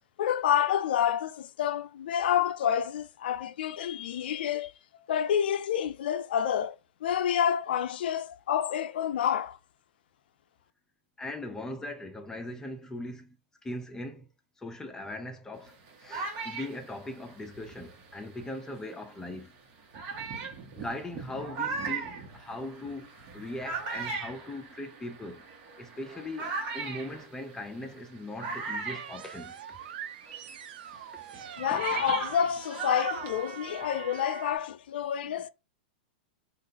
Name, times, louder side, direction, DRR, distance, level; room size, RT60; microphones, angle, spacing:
voice 1, 0.2-4.7 5.1-6.8 7.0-9.6 31.6-35.5, left 9 dB, 75° left, 0.4 m, -28 dB
voice 2, 11.2-13.4 13.6-14.3 14.6-19.5 20.7-25.5 25.8-29.8 30.9-31.0 35.3-35.4, left 1 dB, 10° left, 0.6 m, -40 dB
sound 1, 15.6-18.7 19.3-19.4 19.9-30.0 30.2-34.0, right 4 dB, 45° right, 1.2 m, -38 dB
sound 2, 28.9-34.6, right 9 dB, 75° right, 0.5 m, -42 dB
3.5 x 2.5 x 2.8 m
hypercardioid pair, 125°, 5 cm